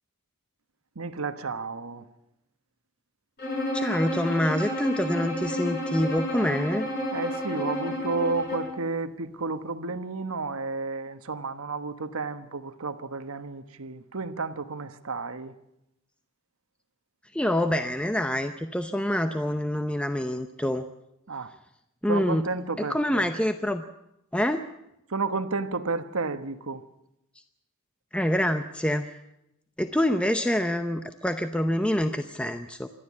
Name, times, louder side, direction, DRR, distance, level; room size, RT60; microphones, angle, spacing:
voice 1, 1.0-2.0 7.1-15.5 21.3-21.5 22.1-23.2 25.1-26.8, right 3 dB, 80° right, 1.2 m, -32 dB
Bowed string instrument, 3.4-8.8, left 1 dB, 45° left, 6.6 m, -31 dB
voice 2, 3.7-6.9 17.3-20.9 22.0-22.5 22.8-23.8 24.3-24.7 28.1-29.1 29.8-32.9, left 1 dB, 5° left, 0.6 m, -26 dB
26.5 x 12.0 x 8.5 m
head